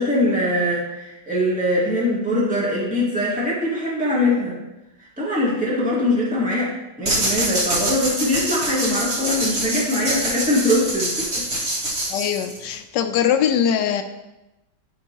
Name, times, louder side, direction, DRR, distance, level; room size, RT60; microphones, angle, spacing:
voice 1, 0.0-4.6 5.0-6.7 7.0-11.4, left 1 dB, 5° right, -6 dB, 1.6 m, -22 dB
sound 1, 7.1-12.8, right 1 dB, 40° right, 1.6 m, -25 dB
voice 2, 12.1-14.0, left 9 dB, 75° left, 7 dB, 1.1 m, -21 dB
10.0 x 5.4 x 2.9 m, 0.98 s
omnidirectional pair, 2.0 m